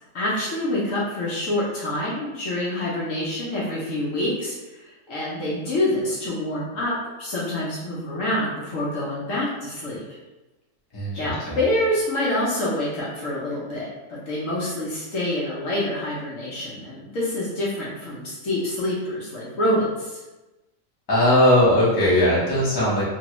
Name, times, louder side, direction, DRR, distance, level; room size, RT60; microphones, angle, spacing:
voice 1, 0.1-6.9 7.2-10.0 11.2-20.2, left 1 dB, 60° left, -6 dB, 1.0 m, -26 dB
voice 2, 10.9-11.6 21.1-23.0, left 1 dB, 25° left, -8 dB, 0.5 m, -19 dB
3.0 x 2.3 x 2.9 m, 1.1 s
omnidirectional pair, 1.8 m